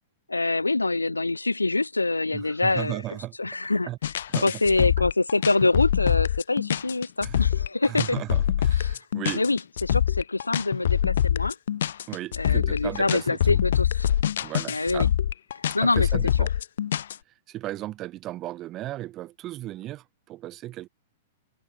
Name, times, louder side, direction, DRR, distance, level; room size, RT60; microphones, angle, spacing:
voice 1, 0.3-3.0 3.4-3.9 4.4-8.2 8.8-9.0 9.3-11.5 12.4-14.1 14.7-15.1 15.7-16.1, left 2 dB, 85° left, 1.2 m, -25 dB
voice 2, 2.3-3.4 3.8-4.0 4.3-4.6 5.0-5.1 7.2-7.6 7.9-9.5 12.1-13.6 14.4-15.1 15.8-16.5 17.5-20.9, right 15 dB, 30° right, 2.1 m, -35 dB
sound 1, 4.0-17.1, left 10 dB, 60° left, 0.3 m, -24 dB
figure-of-eight pair, 100°, 0 cm